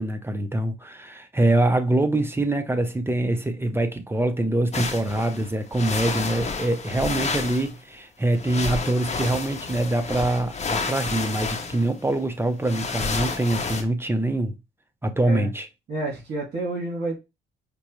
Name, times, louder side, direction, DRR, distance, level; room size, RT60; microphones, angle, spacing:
voice 1, 0.0-14.6 15.0-15.7, right 1 dB, 10° right, 0.6 m, -24 dB
sound 1, 4.7-7.7 8.3-13.8, left 4 dB, 35° left, 0.8 m, -30 dB
voice 2, 15.9-17.2, right 2 dB, 55° right, 2.2 m, -29 dB
5.1 x 2.1 x 3.0 m
cardioid pair, 90°, 20 cm